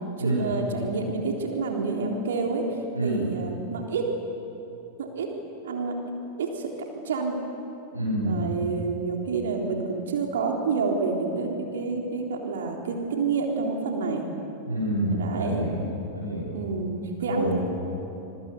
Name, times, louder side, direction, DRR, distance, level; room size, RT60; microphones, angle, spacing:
voice 1, 0.2-2.7 3.0-4.1 5.0-5.3 5.6-5.9 6.4-6.7 7.0-7.4 8.3-14.3 15.0-15.7 16.5-17.5, right 4 dB, 60° right, 1 dB, 3.7 m, -28 dB
voice 2, 7.9-8.4 14.7-15.9 16.1-16.6 17.3-17.5, right 1 dB, 85° right, -6 dB, 6.3 m, -27 dB
26.5 x 23.5 x 8.2 m, 2.8 s
figure-of-eight pair, 90°, 0 cm